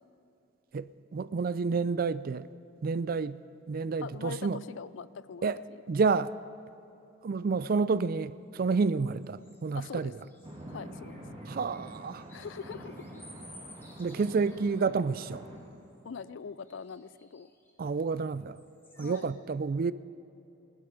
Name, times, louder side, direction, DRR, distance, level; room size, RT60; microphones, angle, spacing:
voice 1, 0.7-2.5 2.8-3.4 3.7-4.6 5.4-5.6 5.9-6.3 7.2-10.1 11.5-12.2 14.0-15.4 17.8-18.6 19.0-19.9, right 4 dB, 45° right, 0.3 m, -29 dB
voice 2, 4.0-5.8 9.7-10.1 10.7-11.2 12.3-13.1 16.0-17.5 19.0-19.3, left 6 dB, 65° left, 0.4 m, -42 dB
sound 1, 8.7-14.9 15.3-16.0 16.6-18.1 18.5-19.3, left 1 dB, 10° left, 1.4 m, -57 dB
sound 2, 10.4-15.6, right 1 dB, 30° right, 2.6 m, -46 dB
19.0 x 12.0 x 5.1 m
head